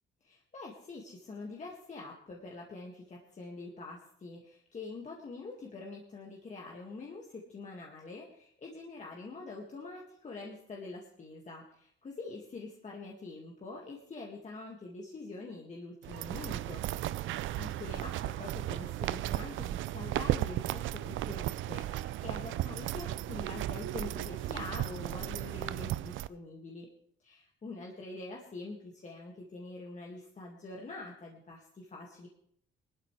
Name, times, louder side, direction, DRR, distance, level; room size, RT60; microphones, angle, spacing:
voice 1, 0.2-16.8 17.2-26.9 27.2-32.3, left 3 dB, 35° left, -2 dB, 2.1 m, -45 dB
sound 1, 16.0-26.3, right 14 dB, 80° right, 0.5 m, -35 dB
19.5 x 12.5 x 3.3 m, 0.67 s
cardioid pair, 90°, 20 cm